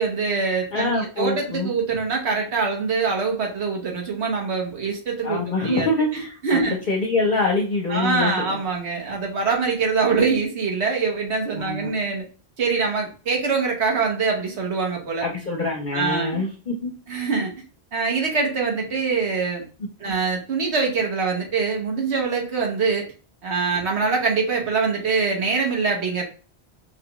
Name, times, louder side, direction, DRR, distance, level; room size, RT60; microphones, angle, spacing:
voice 1, 0.0-5.9 6.1-6.8 7.9-12.2 12.6-15.3 15.9-16.4 17.1-17.5 17.9-19.6 20.0-23.1 23.4-26.2, right 4 dB, 90° right, 1 dB, 1.4 m, -24 dB
voice 2, 0.7-1.7 5.2-8.6 11.5-11.9 15.2-16.9 20.0-20.1, left 3 dB, 50° left, -1 dB, 0.8 m, -25 dB
5.5 x 2.3 x 2.9 m, 0.36 s
omnidirectional pair, 1.1 m